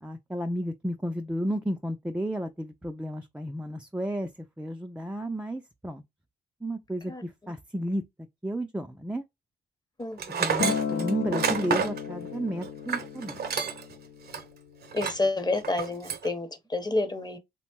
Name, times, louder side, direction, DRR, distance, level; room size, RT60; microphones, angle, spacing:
voice 1, 0.0-4.3 4.6-6.0 6.6-8.0 8.4-9.2 10.4-13.4, right 1 dB, 5° right, 0.4 m, -32 dB
voice 2, 10.0-10.5 14.9-17.4, left 2 dB, 20° left, 0.8 m, -29 dB
Tools, 10.2-13.9 14.3-14.4 14.9-15.3 15.6-16.3, right 6 dB, 50° right, 0.6 m, -29 dB
Acoustic guitar, 10.6-14.9 15.7-15.8, left 7 dB, 55° left, 0.6 m, -34 dB
2.9 x 2.1 x 2.9 m
supercardioid pair, 50°, 21 cm